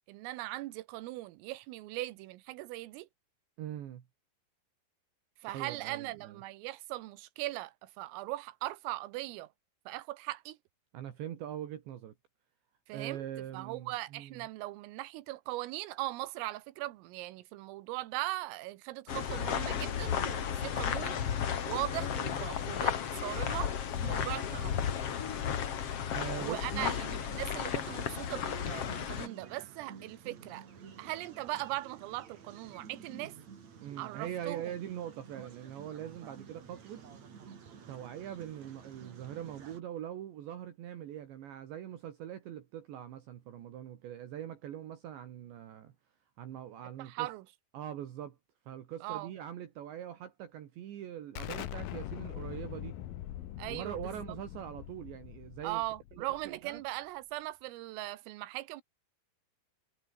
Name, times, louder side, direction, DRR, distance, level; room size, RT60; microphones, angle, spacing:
voice 1, 0.1-3.1 5.4-9.5 9.9-10.6 12.9-13.3 13.5-21.2 21.6-23.7 24.0-24.7 26.4-30.7 31.0-33.3 34.0-34.6 47.0-47.4 49.0-49.3 53.6-54.0 55.6-58.8, right 18 dB, 90° right, 3.7 m, -39 dB
voice 2, 3.6-4.0 5.5-6.4 10.9-12.1 12.9-14.5 24.1-24.4 26.1-27.0 33.8-37.0 37.9-45.9 46.4-47.3 47.7-48.4 48.7-53.0 53.7-55.8 56.1-56.8, right 11 dB, 65° right, 4.1 m, -42 dB
sound 1, 19.1-29.3, left 8 dB, 90° left, 1.3 m, -34 dB
sound 2, 26.4-39.8, right 6 dB, 40° right, 3.5 m, -52 dB
Explosion, 51.4-56.8, left 13 dB, 70° left, 2.1 m, -43 dB
omnidirectional pair, 5.9 m